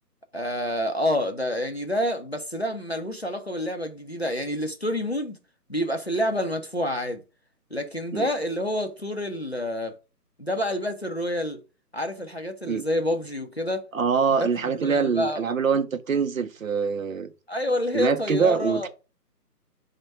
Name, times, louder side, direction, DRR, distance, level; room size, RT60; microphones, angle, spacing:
voice 1, 0.3-5.4 5.7-7.2 7.7-9.9 10.4-11.6 11.9-13.9 14.4-15.4 17.5-18.9, left 1 dB, 45° left, 0.4 m, -28 dB
voice 2, 13.9-17.3 17.9-18.9, right 6 dB, 55° right, 0.5 m, -24 dB
5.1 x 2.2 x 4.5 m
hypercardioid pair, 175°, 48 cm